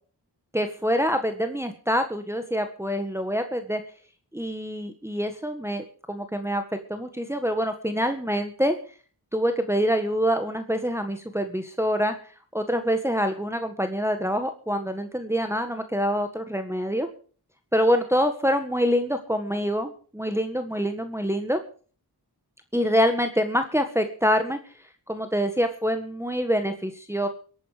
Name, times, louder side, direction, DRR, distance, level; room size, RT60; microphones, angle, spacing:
voice 1, 0.5-3.8 4.3-6.6 6.9-8.8 9.3-12.1 12.5-17.1 17.7-21.6 22.7-24.6 25.1-27.3, equal, 5° right, 6 dB, 1.6 m, -25 dB
23.0 x 8.7 x 5.1 m, 0.42 s
wide cardioid pair, 50°, 39 cm